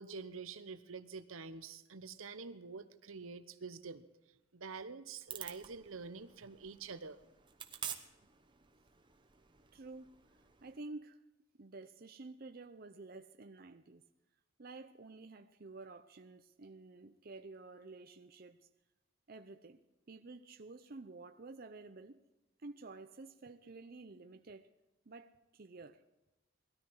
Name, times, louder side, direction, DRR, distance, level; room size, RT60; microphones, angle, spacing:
voice 1, 0.0-4.1 4.5-7.2, right 4 dB, 80° right, 0.9 m, -47 dB
sound 1, 5.3-10.8, right 8 dB, 25° right, 1.0 m, -50 dB
voice 2, 9.7-10.1 10.6-11.2 11.6-14.0 14.6-18.6 19.3-22.2 22.6-24.7 25.1-26.0, right 3 dB, 45° right, 0.6 m, -51 dB
19.5 x 13.5 x 4.7 m
head